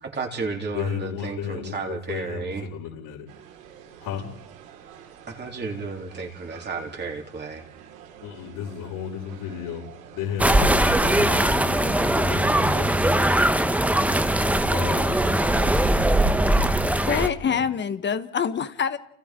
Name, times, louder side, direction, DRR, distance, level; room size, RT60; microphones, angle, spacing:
voice 1, 0.0-2.7 5.3-7.6, right 4 dB, 25° right, 1 dB, 3.5 m, -32 dB
voice 2, 0.7-3.3 4.0-4.3 8.2-13.3 14.7-16.1 17.4-17.6, left 8 dB, 60° left, -6 dB, 5.7 m, -34 dB
sound 1, 3.3-15.1, right 8 dB, 80° right, 4.9 m, -47 dB
sound 2, 10.4-17.3, right 1 dB, 5° right, 1.1 m, -20 dB
voice 3, 17.1-19.0, left 7 dB, 25° left, 11 dB, 1.3 m, -25 dB
29.5 x 28.0 x 3.8 m, 0.74 s
supercardioid pair, 110°, 41 cm